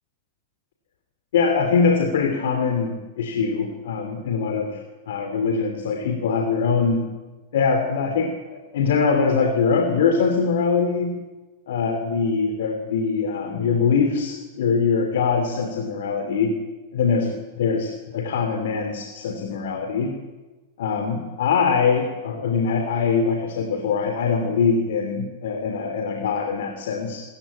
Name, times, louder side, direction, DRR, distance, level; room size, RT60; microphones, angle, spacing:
voice 1, 1.3-7.0 7.5-11.2 11.7-16.5 16.9-20.2 20.8-27.2, left 5 dB, 75° left, 5 dB, 3.0 m, -23 dB
26.0 x 15.0 x 8.7 m, 1.2 s
hypercardioid pair, 120°, 0 cm